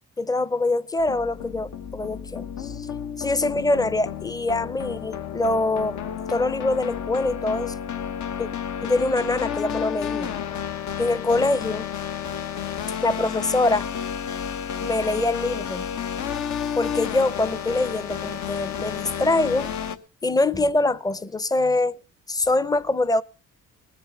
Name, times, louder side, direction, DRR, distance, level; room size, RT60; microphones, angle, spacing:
voice 1, 0.2-2.9 3.2-6.0 6.3-7.7 8.4-8.5 8.8-10.3 11.0-11.9 13.0-13.9 14.8-15.8 16.8-19.7 20.2-22.0 22.3-23.2, left 2 dB, 10° left, 0.6 m, -24 dB
sound 1, 1.0-20.0, left 8 dB, 65° left, 1.1 m, -31 dB
19.5 x 7.5 x 5.7 m
cardioid pair, 90°, 30 cm